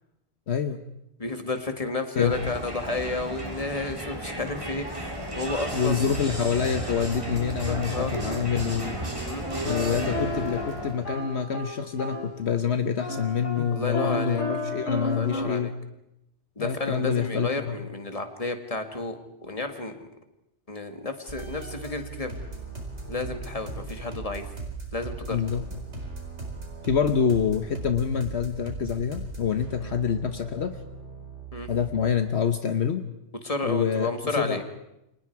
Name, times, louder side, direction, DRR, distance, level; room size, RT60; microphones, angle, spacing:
voice 1, 0.5-0.8 2.1-2.3 5.7-9.1 9.6-15.7 16.6-17.8 25.3-25.6 26.8-30.8 31.7-33.1 33.6-34.6, left 7 dB, 65° left, 8 dB, 1.3 m, -26 dB
voice 2, 1.2-6.1 7.7-8.1 9.2-9.4 13.7-14.4 15.0-15.7 16.6-20.1 20.7-22.3 23.1-24.5 24.9-25.4 29.8-29.9 31.5-31.7 33.4-34.6, left 3 dB, 30° left, 6 dB, 2.2 m, -32 dB
Crowd, 2.2-11.1, right 1 dB, 25° right, 3.4 m, -33 dB
sound 1, 9.4-12.5 13.0-15.4, left 1 dB, 90° left, 4.9 m, -33 dB
sound 2, 21.3-32.0, right 3 dB, 75° right, 5.1 m, -38 dB
30.0 x 25.5 x 4.8 m, 0.86 s
omnidirectional pair, 1.2 m